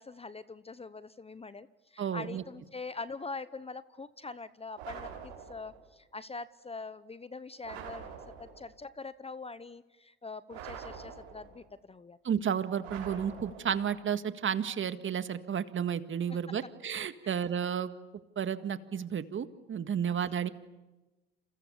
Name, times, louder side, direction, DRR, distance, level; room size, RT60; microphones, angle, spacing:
voice 1, 0.0-8.1 8.4-12.2 17.2-17.4, left 3 dB, 20° left, 16 dB, 0.9 m, -43 dB
voice 2, 2.0-2.4 12.2-17.9 18.4-20.5, right 8 dB, 40° right, 10 dB, 1.9 m, -32 dB
sound 1, 4.8-5.8 7.6-8.7 10.5-11.7 12.8-13.9, right 7 dB, 85° right, 7.5 m, -45 dB
28.5 x 28.0 x 7.2 m, 1.1 s
hypercardioid pair, 70°, 31 cm